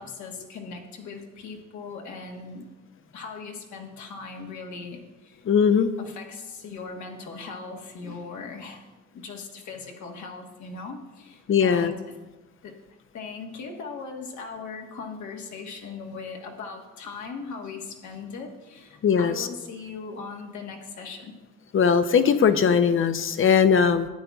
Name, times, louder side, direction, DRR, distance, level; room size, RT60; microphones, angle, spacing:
voice 1, 0.0-2.7 3.1-5.4 6.0-8.9 9.1-12.0 12.6-12.7 13.1-21.4, left 4 dB, 70° left, 1 dB, 1.4 m, -39 dB
voice 2, 5.5-5.9 11.5-11.9 19.0-19.5 21.7-24.1, left 6 dB, 45° left, 10 dB, 0.6 m, -20 dB
12.5 x 9.0 x 2.4 m, 1.2 s
cardioid pair, 90°, 30 cm